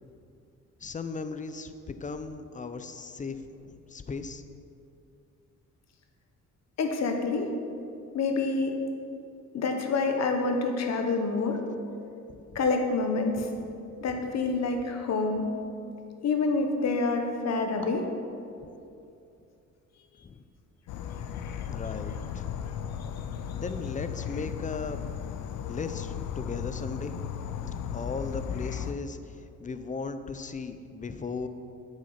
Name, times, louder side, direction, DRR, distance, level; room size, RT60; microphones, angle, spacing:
voice 1, 0.8-4.4 12.3-12.6 13.4-13.5 18.6-18.7 20.2-20.4 21.7-22.6 23.5-25.0 25.7-27.3 27.9-31.5, left 4 dB, 25° left, 10 dB, 0.6 m, -37 dB
voice 2, 6.8-7.5 8.1-8.7 9.5-11.6 12.5-13.5 14.0-15.5 16.2-18.1, left 3 dB, 60° left, 4 dB, 1.2 m, -27 dB
Insect / Frog, 20.9-28.9, left 8 dB, 85° left, 0.6 m, -35 dB
8.3 x 6.4 x 5.8 m, 2.6 s
cardioid pair, 90°, 30 cm